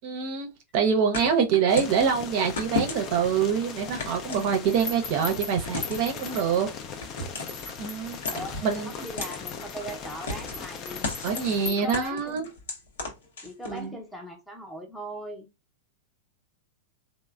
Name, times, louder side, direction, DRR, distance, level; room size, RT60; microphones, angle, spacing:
voice 1, 0.0-0.5 0.7-6.7 7.8-8.2 8.6-8.9 11.2-12.4 13.7-13.9, right 7 dB, 50° right, 0.6 m, -25 dB
sound 1, 1.1-2.0 2.6-3.3 4.0-4.9 5.6-6.1 7.0-7.6 8.2-8.7 9.2-9.4 10.3-10.7 11.0-11.5 11.9-13.8, left 3 dB, 70° left, 0.8 m, -34 dB
sound 2, 1.7-11.7, left 6 dB, 40° left, 0.4 m, -39 dB
sound 3, 4.1-6.9 7.3-12.5, left 4 dB, 55° left, 1.1 m, -40 dB
voice 2, 8.3-11.2 11.6-12.5 13.4-15.5, right 1 dB, 5° left, 0.7 m, -39 dB
3.1 x 2.0 x 2.3 m
hypercardioid pair, 105°, 0 cm